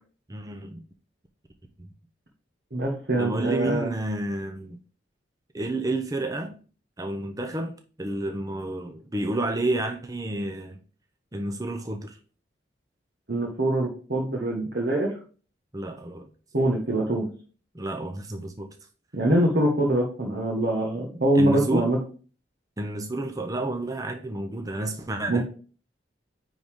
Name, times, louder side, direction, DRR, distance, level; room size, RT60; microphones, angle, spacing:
voice 1, 0.3-0.8 1.8-1.9 3.2-4.8 5.5-6.6 7.0-10.8 11.3-12.2 15.7-16.3 17.7-18.7 21.3-21.9 22.8-25.4, right 1 dB, 20° right, 0.6 m, -30 dB
voice 2, 2.7-3.9 13.3-15.1 16.5-17.3 19.1-22.0 25.3-25.4, right 1 dB, 60° right, 1.4 m, -24 dB
9.6 x 4.0 x 3.6 m
head